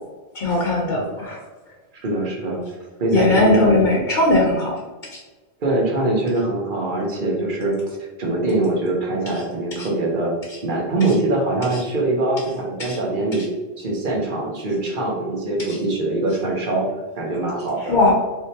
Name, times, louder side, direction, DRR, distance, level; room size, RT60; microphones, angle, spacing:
voice 1, 0.3-1.4 3.1-4.8 5.1-5.2 9.3-9.4 9.8-9.9 10.5-10.6 11.0-11.1 11.7-11.8 12.8-13.0 13.4-13.5 15.7-15.8 17.9-18.1, left 2 dB, 50° left, -3 dB, 1.0 m, -20 dB
voice 2, 1.9-2.6 3.0-3.8 5.6-10.3 10.6-13.4 13.8-16.9 17.2-18.0, right 2 dB, 50° right, -1 dB, 1.2 m, -23 dB
4.7 x 3.3 x 2.8 m, 1.2 s
omnidirectional pair, 1.1 m